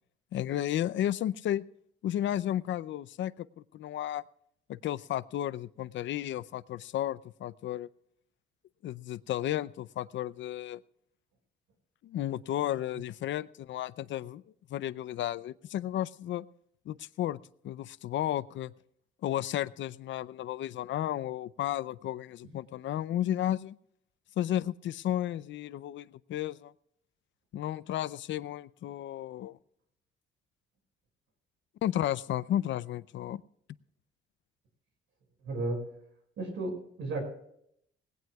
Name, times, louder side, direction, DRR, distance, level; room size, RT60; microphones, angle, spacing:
voice 1, 0.3-1.7 2.0-4.2 4.7-7.9 8.8-10.8 12.0-14.4 14.7-16.4 16.9-17.4 17.6-18.7 19.2-23.8 24.4-26.7 27.5-29.6 31.8-33.4, left 12 dB, 70° left, 18 dB, 0.6 m, -33 dB
voice 2, 35.4-35.8 36.4-37.2, right 2 dB, 80° right, 3 dB, 5.9 m, -33 dB
19.5 x 17.0 x 2.4 m, 0.70 s
cardioid pair, 90°, 20 cm